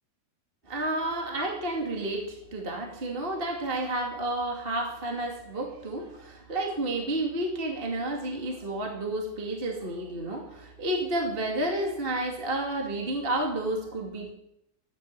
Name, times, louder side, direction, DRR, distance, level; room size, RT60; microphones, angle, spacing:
voice 1, 0.7-14.3, right 1 dB, 20° right, 1 dB, 1.8 m, -31 dB
14.0 x 10.5 x 7.4 m, 0.80 s
omnidirectional pair, 4.1 m